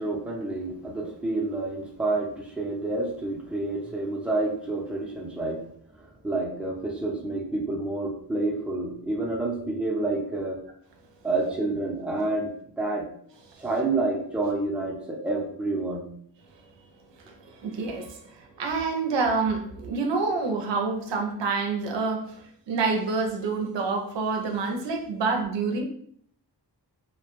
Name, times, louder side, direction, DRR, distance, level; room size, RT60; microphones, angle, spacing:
voice 1, 0.0-5.6 6.0-10.6 11.2-13.1 13.6-16.1, right 2 dB, 5° right, -2 dB, 0.5 m, -29 dB
voice 2, 17.6-22.4 22.7-25.8, right 4 dB, 80° right, 2 dB, 0.6 m, -27 dB
2.1 x 2.1 x 2.9 m, 0.62 s
wide cardioid pair, 65°, 43 cm